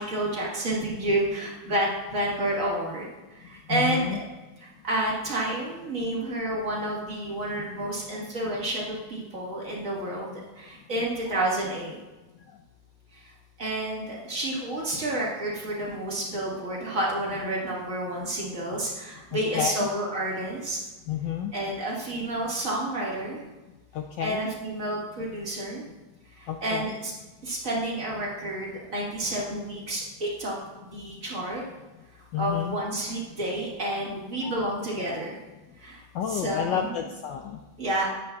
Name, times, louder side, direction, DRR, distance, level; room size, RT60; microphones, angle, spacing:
voice 1, 0.0-4.2 4.6-12.0 13.1-13.3 13.6-20.8 21.5-23.4 24.2-25.8 26.3-27.1 27.4-30.5 30.9-31.6 32.2-35.4 35.8-36.0 36.3-36.9 37.8-38.1, right 1 dB, 40° right, -4 dB, 1.8 m, -30 dB
voice 2, 3.7-4.2 19.3-19.9 21.1-21.5 23.9-24.5 26.5-26.9 32.3-32.8 34.4-34.6 35.1-35.3 36.1-37.6, left 9 dB, 75° left, 4 dB, 1.1 m, -30 dB
10.5 x 8.6 x 2.3 m, 1.1 s
omnidirectional pair, 2.4 m